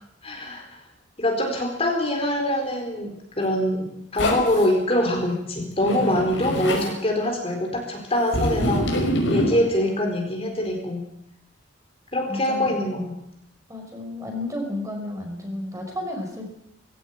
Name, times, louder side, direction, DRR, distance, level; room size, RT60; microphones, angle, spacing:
voice 1, 0.2-0.6 1.2-8.9 9.3-11.0 12.1-13.1, left 1 dB, 30° left, 2 dB, 4.3 m, -24 dB
Zipper (clothing), 4.2-4.6 5.8-6.9 8.3-9.5, left 1 dB, 70° left, 5.9 m, -24 dB
voice 2, 5.8-6.3 9.5-10.1 12.3-12.8 13.7-16.4, left 1 dB, 15° right, 2 dB, 5.4 m, -32 dB
19.5 x 16.5 x 8.8 m, 0.75 s
head